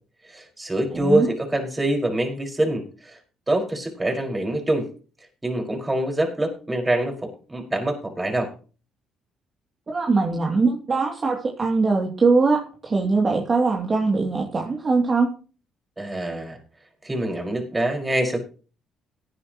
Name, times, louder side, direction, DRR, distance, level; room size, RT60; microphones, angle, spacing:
voice 1, 0.3-3.2 3.5-4.9 5.4-8.5 16.0-16.6 17.0-18.4, right 1 dB, 20° right, 2 dB, 5.5 m, -25 dB
voice 2, 0.9-1.3 9.9-15.3, right 4 dB, 35° right, 0 dB, 2.7 m, -21 dB
18.0 x 10.5 x 3.1 m, 0.37 s
hypercardioid pair, 50°, 0 cm